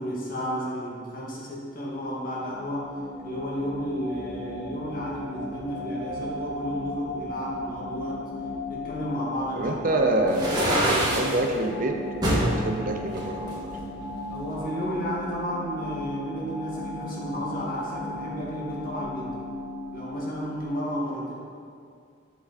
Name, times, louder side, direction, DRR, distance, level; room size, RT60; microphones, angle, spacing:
voice 1, 0.0-2.9 3.2-8.2 8.7-11.0 14.3-19.4 19.9-21.3, equal, 50° left, -5 dB, 2.2 m, -32 dB
sound 1, 1.9-20.7, left 1 dB, 70° left, 1.1 m, -37 dB
voice 2, 9.5-12.0 12.3-13.7, right 1 dB, 45° right, 3 dB, 0.7 m, -27 dB
sound 2, 10.3-11.4 12.2-12.5 13.1-14.2, right 1 dB, 20° right, 2.3 m, -25 dB
8.4 x 7.7 x 4.2 m, 2.3 s
head